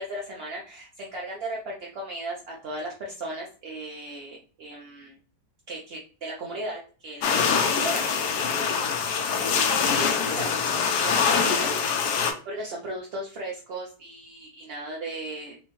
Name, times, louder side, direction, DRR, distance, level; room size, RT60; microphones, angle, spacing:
voice 1, 0.0-5.2 5.7-11.7 12.4-15.5, right 1 dB, 60° right, -3 dB, 0.6 m, -37 dB
sound 1, 7.2-12.3, left 6 dB, 75° left, 1.2 m, -24 dB
4.2 x 2.2 x 3.0 m, 0.39 s
omnidirectional pair, 1.8 m